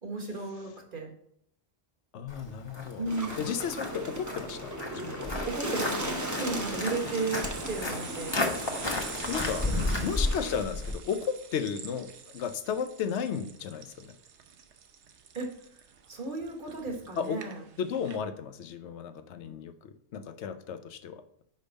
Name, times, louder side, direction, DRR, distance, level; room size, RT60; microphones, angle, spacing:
voice 1, 0.0-1.1 3.0-3.5 5.4-8.4 9.6-10.1 15.3-15.5 16.1-17.6, right 3 dB, 50° right, 1 dB, 1.5 m, -35 dB
voice 2, 2.1-3.1 3.4-5.3 8.9-9.7 10.0-14.1 17.2-17.4 17.8-21.2, left 7 dB, 85° left, 10 dB, 0.9 m, -34 dB
Walk footsteps, 2.3-10.9, left 2 dB, 25° left, 0.9 m, -34 dB
Bird, 3.1-10.6, right 1 dB, 15° right, 0.9 m, -37 dB
sound 1, 6.2-18.2, right 7 dB, 85° right, 1.0 m, -47 dB
5.3 x 5.2 x 5.2 m, 0.69 s
omnidirectional pair, 1.1 m